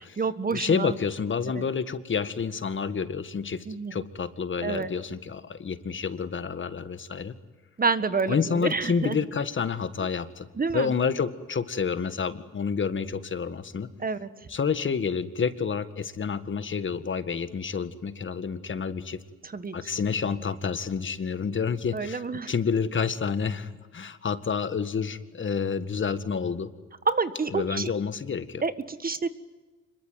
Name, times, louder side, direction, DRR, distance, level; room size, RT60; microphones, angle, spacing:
voice 1, 0.0-1.0 1.6-1.7 3.7-4.1 4.6-4.9 7.8-9.2 10.5-10.9 14.0-14.3 19.4-19.7 21.9-22.5 27.0-27.9 28.6-29.3, right 4 dB, 30° right, 13 dB, 1.6 m, -28 dB
voice 2, 0.5-3.7 3.9-7.3 8.3-10.5 10.7-13.9 14.5-19.2 19.7-26.7 27.5-28.6, left 6 dB, 40° left, 12 dB, 1.8 m, -29 dB
26.0 x 22.5 x 9.4 m, 1.3 s
cardioid pair, 90°, 30 cm